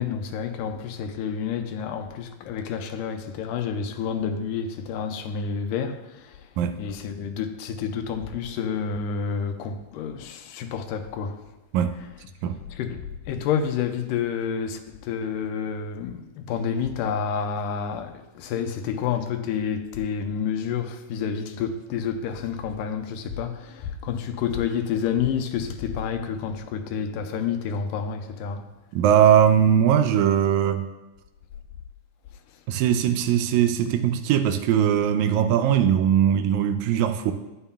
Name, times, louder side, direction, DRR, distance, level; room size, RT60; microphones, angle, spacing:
voice 1, 0.0-11.4 12.0-12.1 12.7-28.7 32.5-32.6, left 7 dB, 80° left, 2.1 m, -29 dB
voice 2, 28.9-30.9 32.7-37.3, right 9 dB, 85° right, 1.6 m, -20 dB
11.0 x 8.9 x 2.3 m
omnidirectional pair, 3.9 m